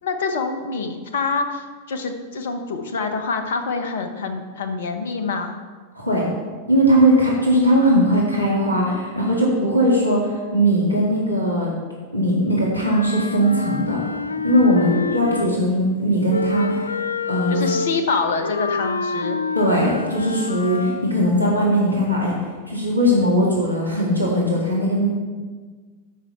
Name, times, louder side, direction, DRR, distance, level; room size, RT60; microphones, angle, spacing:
voice 1, 0.0-5.6 14.8-15.6 17.5-19.4, left 4 dB, 60° left, 7 dB, 1.1 m, -26 dB
voice 2, 6.0-6.3 6.7-11.7 12.1-14.0 14.4-16.9 17.3-17.6 19.6-22.3 22.7-25.1, equal, 90° right, -4 dB, 2.0 m, -19 dB
Wind instrument woodwind instrument, 12.8-15.7 16.3-21.1, left 4 dB, 80° left, 0.3 m, -27 dB
12.5 x 5.8 x 4.6 m, 1.4 s
figure-of-eight pair, 90°, 0 cm